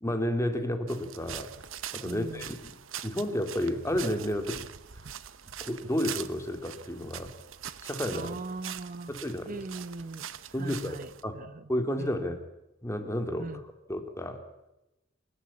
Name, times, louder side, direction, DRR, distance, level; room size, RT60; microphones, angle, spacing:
voice 1, 0.0-1.5 1.9-2.8 3.0-4.7 5.6-7.3 7.8-8.3 9.1-9.6 10.5-11.0 11.2-11.4 11.7-12.4 12.8-13.5 13.9-14.4, left 1 dB, 15° left, 5 dB, 2.7 m, -31 dB
sound 1, 0.9-11.2, right 10 dB, 80° right, 1.0 m, -43 dB
voice 2, 2.0-2.6 8.1-9.1 9.5-10.3 10.6-11.7 12.0-12.1 13.4-13.6, right 3 dB, 45° right, 14 dB, 0.9 m, -40 dB
28.5 x 14.5 x 8.5 m, 0.95 s
head